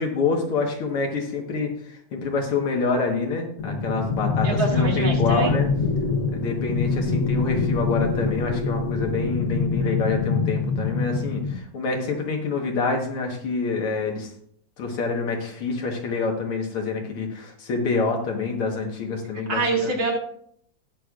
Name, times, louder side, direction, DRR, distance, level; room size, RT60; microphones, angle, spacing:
voice 1, 0.0-1.7 2.1-5.7 6.3-14.3 14.8-19.9, left 4 dB, 80° left, 2 dB, 2.4 m, -26 dB
sound 1, 3.6-11.6, left 4 dB, 45° left, 1.2 m, -25 dB
voice 2, 4.4-5.5 19.5-20.1, right 3 dB, 65° right, -1 dB, 2.9 m, -25 dB
18.5 x 6.4 x 2.5 m, 0.66 s
omnidirectional pair, 2.4 m